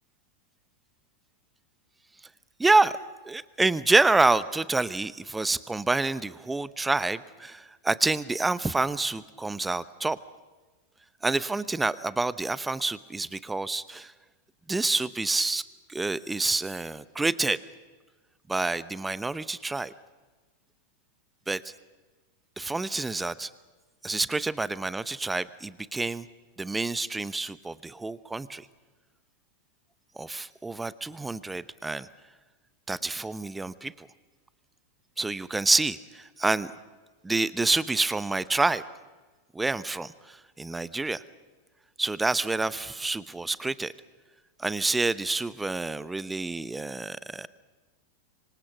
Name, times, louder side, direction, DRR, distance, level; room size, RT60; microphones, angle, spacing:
voice 1, 2.6-2.9 3.3-10.2 11.2-14.1 14.7-15.6 15.9-17.6 18.5-19.9 21.5-21.6 22.6-23.5 24.0-26.3 26.6-28.7 30.2-32.1 32.9-34.1 35.2-36.7 37.2-38.8 39.5-41.2 42.0-43.9 44.6-47.5, right 3 dB, 10° right, 18 dB, 0.8 m, -27 dB
26.0 x 24.5 x 5.9 m, 1.3 s
figure-of-eight pair, 90°, 0 cm